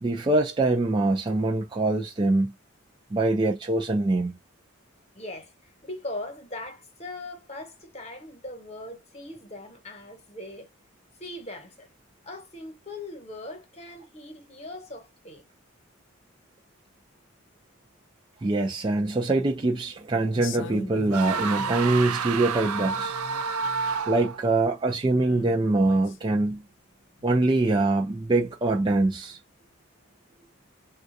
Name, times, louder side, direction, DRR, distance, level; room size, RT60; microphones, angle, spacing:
voice 1, 0.0-2.5 3.1-4.4 18.4-23.1 24.1-26.6 27.2-29.4, right 2 dB, 20° right, 0.3 m, -24 dB
voice 2, 5.1-10.7 11.2-11.9 12.2-15.4 21.4-21.5, left 2 dB, 30° left, 1.0 m, -40 dB
sound 1, 20.3-22.0 22.4-24.0 24.6-24.7 25.2-26.5 27.2-27.3, left 4 dB, 55° left, 0.5 m, -43 dB
sound 2, 21.1-24.5, right 5 dB, 85° right, 0.5 m, -29 dB
3.7 x 2.3 x 2.5 m
head